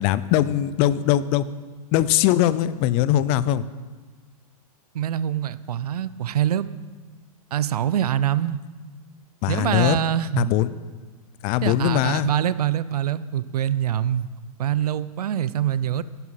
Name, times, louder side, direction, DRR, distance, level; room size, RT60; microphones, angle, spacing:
voice 1, 0.0-1.4 1.9-3.7 9.4-10.0 10.4-10.7 11.4-12.3, left 13 dB, 30° left, 17 dB, 0.4 m, -21 dB
voice 2, 4.9-6.7 7.5-8.6 9.5-10.5 11.6-14.3 14.6-16.0, right 10 dB, 80° right, 16 dB, 0.6 m, -24 dB
11.5 x 9.7 x 5.8 m, 1.4 s
hypercardioid pair, 140°, 19 cm